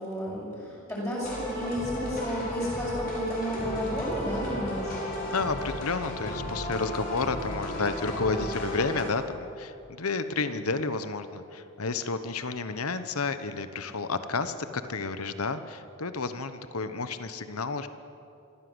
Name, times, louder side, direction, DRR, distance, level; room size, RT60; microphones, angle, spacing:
voice 1, 0.0-5.0, equal, 15° left, -6 dB, 6.2 m, -32 dB
sound 1, 1.2-9.0, left 1 dB, 40° left, 6.8 m, -34 dB
voice 2, 5.3-17.9, left 4 dB, 85° left, 11 dB, 1.1 m, -31 dB
25.0 x 15.5 x 8.0 m, 2.6 s
head